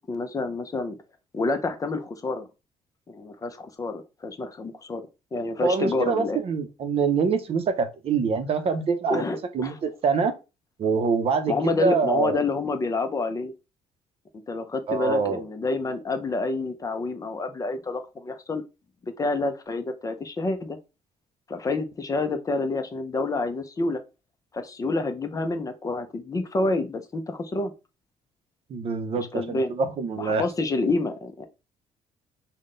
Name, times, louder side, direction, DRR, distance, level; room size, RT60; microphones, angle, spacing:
voice 1, 0.1-1.0 1.3-2.5 3.1-5.0 5.3-6.4 9.1-9.7 11.5-13.5 14.5-18.6 19.0-20.8 21.5-24.0 24.5-27.7 29.1-29.7 30.2-31.5, left 3 dB, 25° left, 0.5 m, -28 dB
voice 2, 5.6-9.2 9.5-10.3 10.8-12.4 14.9-15.4 28.7-30.4, right 5 dB, 45° right, 0.6 m, -25 dB
3.7 x 2.2 x 3.7 m
cardioid pair, 115°, 13 cm